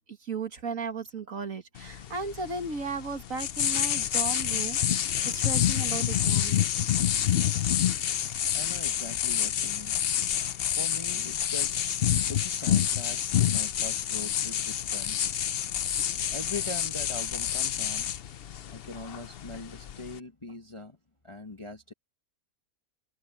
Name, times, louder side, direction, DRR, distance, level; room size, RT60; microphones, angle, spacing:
voice 1, 0.2-6.7, right 4 dB, 50° right, 2.4 m, -36 dB
sound 1, 1.8-20.2, left 10 dB, 70° left, 0.5 m, -28 dB
voice 2, 7.4-21.0 21.2-21.9, left 2 dB, 20° left, 1.2 m, -43 dB
omnidirectional pair, 1.8 m